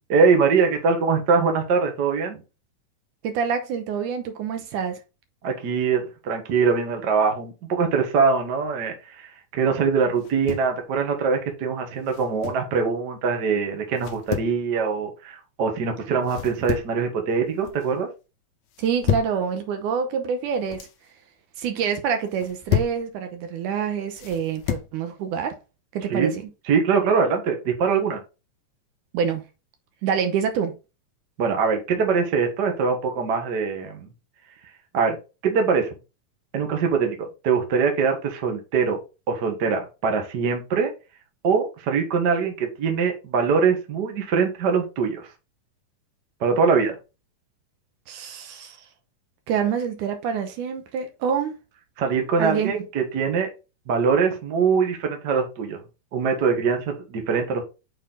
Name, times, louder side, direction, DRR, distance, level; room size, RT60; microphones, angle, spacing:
voice 1, 0.1-2.4 5.4-18.1 26.1-26.3 26.7-28.2 31.4-34.1 34.9-35.2 35.4-35.9 36.5-39.0 39.3-40.9 41.4-45.3 46.4-47.0 52.0-53.5 53.9-55.8 56.1-57.6, right 5 dB, 50° right, 1.2 m, -23 dB
voice 2, 3.2-5.0 18.8-20.8 21.6-25.6 25.9-26.3 29.1-29.4 30.0-30.8 48.1-48.8 49.5-51.5 52.4-52.7, right 7 dB, 75° right, 2.2 m, -26 dB
sound 1, 10.2-10.8 12.1-12.7 14.0-14.6 16.3-17.0 17.4-17.9 18.7-19.4 20.4-21.0 22.3-23.0 24.2-24.9, left 11 dB, 70° left, 1.9 m, -30 dB
6.5 x 4.4 x 3.8 m
omnidirectional pair, 3.9 m